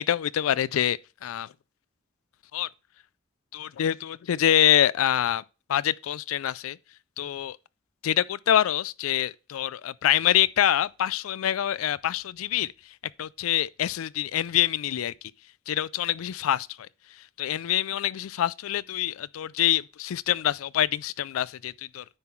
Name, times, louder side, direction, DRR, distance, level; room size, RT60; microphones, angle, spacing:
voice 1, 0.0-1.5 2.5-2.7 3.5-5.4 5.7-6.8 7.2-7.6 8.0-12.7 13.2-15.1 15.7-16.7 17.4-22.0, left 11 dB, 85° left, 0.4 m, -25 dB
9.6 x 3.9 x 4.4 m
head